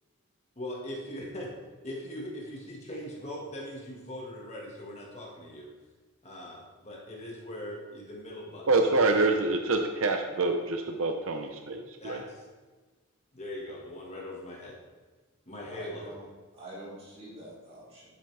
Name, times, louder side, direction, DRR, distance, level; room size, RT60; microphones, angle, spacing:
voice 1, 0.5-1.5 1.8-5.7 6.2-8.7 9.3-9.8 12.0-12.5 13.3-14.8 15.4-16.2, left 1 dB, 30° left, -3 dB, 1.6 m, -41 dB
voice 2, 8.7-12.2, right 3 dB, 65° right, 5 dB, 0.6 m, -26 dB
voice 3, 15.7-16.2 16.5-18.1, right 1 dB, 25° right, -7 dB, 3.1 m, -45 dB
10.5 x 7.7 x 3.3 m, 1.3 s
head